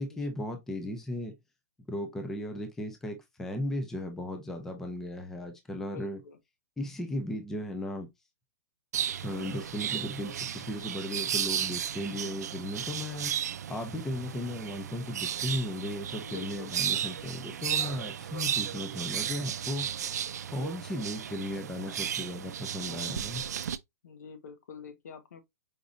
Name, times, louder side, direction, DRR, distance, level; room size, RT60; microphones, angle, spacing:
voice 1, 0.0-1.3 1.9-6.2 6.8-8.1 9.2-13.3 13.7-19.9 20.5-23.4, left 1 dB, 5° left, 0.5 m, -36 dB
voice 2, 5.8-6.4 16.2-16.8 24.0-25.4, left 6 dB, 80° left, 1.0 m, -46 dB
sound 1, 8.9-23.8, right 9 dB, 85° right, 0.4 m, -34 dB
5.0 x 3.1 x 2.4 m
hypercardioid pair, 175°, 9 cm